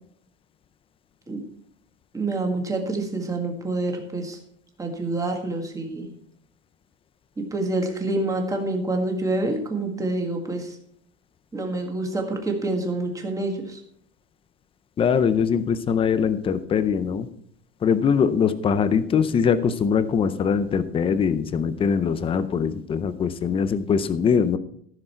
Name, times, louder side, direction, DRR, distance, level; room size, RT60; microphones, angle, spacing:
voice 1, 2.1-4.4 4.8-6.1 7.4-10.8 11.5-13.8, right 2 dB, 10° right, 2 dB, 1.7 m, -27 dB
voice 2, 15.0-17.3 17.8-24.6, left 6 dB, 15° left, 13 dB, 0.4 m, -22 dB
14.5 x 6.6 x 4.4 m, 0.67 s
cardioid pair, 160°, 37 cm